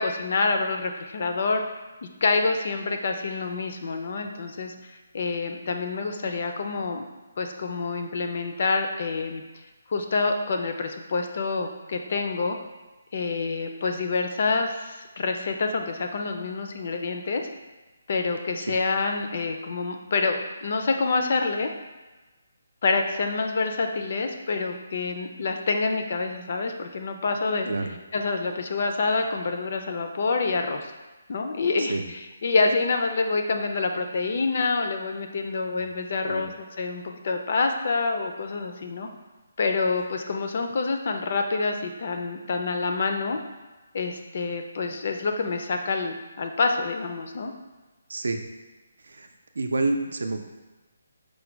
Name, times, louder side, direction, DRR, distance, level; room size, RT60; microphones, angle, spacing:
voice 1, 0.0-1.6 2.0-7.0 7.4-9.4 9.9-12.6 13.1-17.4 18.1-21.7 22.8-27.7 28.1-30.9 31.3-39.1 39.6-43.4 43.9-47.5, left 3 dB, 40° left, 5 dB, 0.4 m, -27 dB
voice 2, 48.1-48.4 49.0-49.3 49.6-50.4, right 2 dB, 80° right, 6 dB, 0.5 m, -28 dB
4.9 x 2.2 x 4.5 m, 1.2 s
hypercardioid pair, 175°, 0 cm